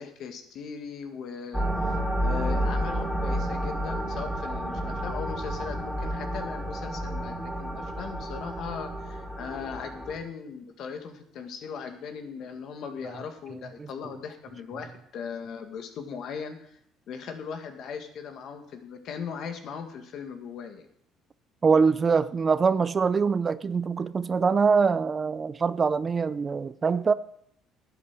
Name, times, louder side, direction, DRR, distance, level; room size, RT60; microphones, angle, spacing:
voice 1, 0.0-16.8 17.1-20.9, left 6 dB, 65° left, 1.9 m, -38 dB
sound 1, 1.5-10.2, right 1 dB, 5° right, 2.9 m, -30 dB
voice 2, 21.6-27.1, right 5 dB, 35° right, 0.5 m, -23 dB
11.0 x 8.6 x 6.7 m
cardioid pair, 95°, 0 cm